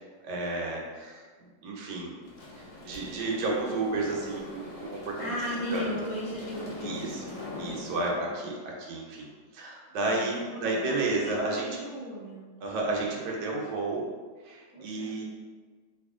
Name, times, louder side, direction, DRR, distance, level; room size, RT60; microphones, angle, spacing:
voice 1, 0.2-1.2 1.6-2.2 2.8-5.3 5.7-5.9 6.8-11.8 12.6-14.0 14.4-15.2, right 2 dB, 80° right, -2 dB, 1.3 m, -32 dB
sound 1, 2.2-8.1, left 2 dB, 50° left, 0.9 m, -42 dB
voice 2, 5.2-7.7 8.1-8.5 10.1-12.5 14.7-15.2, equal, 10° right, -10 dB, 1.0 m, -37 dB
2.9 x 2.6 x 3.6 m, 1.5 s
omnidirectional pair, 1.9 m